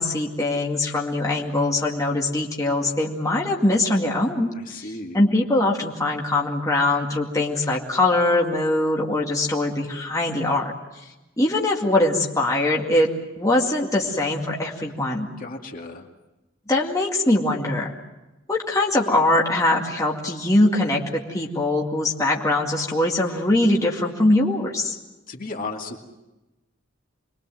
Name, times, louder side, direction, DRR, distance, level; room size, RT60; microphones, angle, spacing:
voice 1, 0.0-10.7 11.4-13.1 13.4-15.3 16.7-17.9 18.5-25.0, left 2 dB, 15° left, -2 dB, 2.1 m, -22 dB
voice 2, 4.5-5.2 15.4-16.1 25.3-26.0, left 3 dB, 45° left, 2 dB, 2.3 m, -34 dB
27.0 x 22.0 x 7.7 m, 1.0 s
head